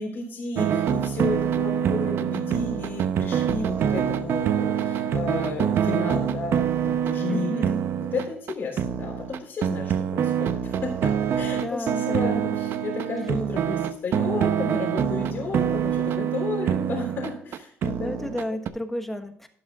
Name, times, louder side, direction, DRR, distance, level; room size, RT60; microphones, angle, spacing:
voice 1, 0.0-7.7 8.0-10.9 11.4-18.6, left 4 dB, 50° left, -3 dB, 3.6 m, -33 dB
sound 1, 0.5-18.7, right 8 dB, 65° right, 0.8 m, -25 dB
voice 2, 7.3-7.8 11.5-12.3 18.0-19.5, equal, 5° left, 6 dB, 1.2 m, -32 dB
12.0 x 11.0 x 2.4 m, 0.63 s
cardioid pair, 135°, 4 cm